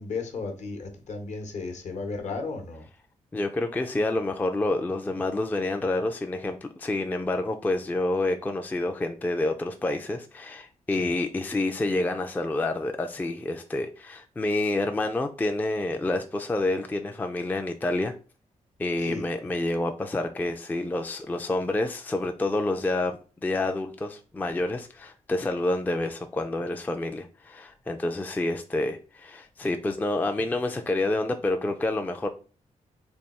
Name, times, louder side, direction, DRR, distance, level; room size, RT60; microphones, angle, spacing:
voice 1, 0.0-2.9 10.9-11.1 19.0-19.2, left 4 dB, 60° left, 0.9 m, -34 dB
voice 2, 3.3-18.1 18.8-32.3, left 2 dB, 15° left, 0.4 m, -28 dB
3.4 x 2.3 x 4.1 m
cardioid pair, 100°, 13 cm